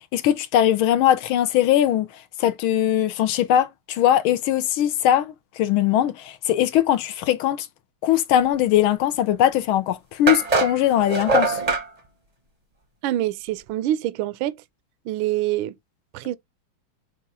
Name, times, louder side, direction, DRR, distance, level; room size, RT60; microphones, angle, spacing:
voice 1, 0.1-2.1 2.4-7.7 8.0-11.6, left 11 dB, 75° left, 1.5 m, -20 dB
sound 1, 9.4-9.5 10.3-11.9, right 3 dB, 35° right, 0.6 m, -22 dB
voice 2, 13.0-14.6 15.1-15.7 16.1-16.4, right 14 dB, 75° right, 1.3 m, -25 dB
7.1 x 2.5 x 5.4 m
omnidirectional pair, 2.4 m